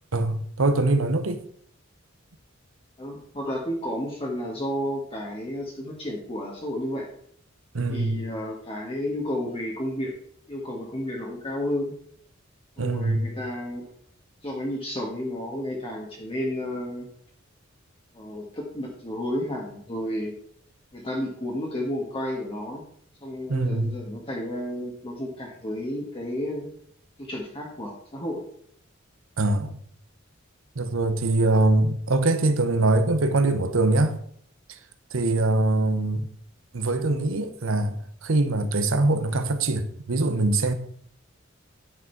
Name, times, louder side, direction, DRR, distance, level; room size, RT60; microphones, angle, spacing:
voice 1, 0.1-1.4 7.7-8.2 12.8-13.2 23.5-23.9 29.4-29.8 30.8-34.2 35.1-36.3 36.7-38.0 38.2-40.7, right 2 dB, 80° right, 1.0 m, -23 dB
voice 2, 3.0-7.1 7.9-10.1 10.5-11.9 12.8-13.9 14.4-17.1 18.1-20.3 20.9-22.8 23.2-26.7 27.2-28.4, left 1 dB, 30° left, 1.5 m, -32 dB
10.0 x 6.4 x 4.6 m
head